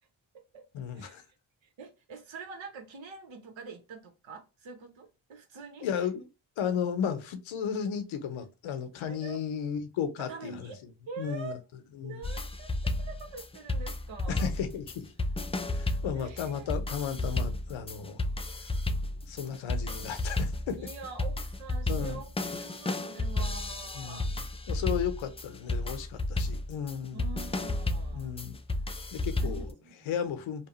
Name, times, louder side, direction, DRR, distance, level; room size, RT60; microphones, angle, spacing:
voice 1, 0.7-1.2 5.8-6.3 6.6-10.9 11.2-11.6 12.0-12.2 14.3-15.1 15.7-18.2 19.3-20.8 21.9-22.2 23.9-27.2 28.1-28.6 29.1-29.7 30.0-30.7, left 8 dB, 75° left, 0.7 m, -34 dB
voice 2, 1.8-5.9 9.1-9.4 10.3-10.8 11.1-11.6 12.0-14.5 16.1-16.7 20.8-24.3 27.1-28.3 29.4-30.1, right 5 dB, 70° right, 1.0 m, -45 dB
sound 1, 12.2-29.7, left 2 dB, 15° left, 0.3 m, -32 dB
2.8 x 2.2 x 3.0 m
supercardioid pair, 45°, 47 cm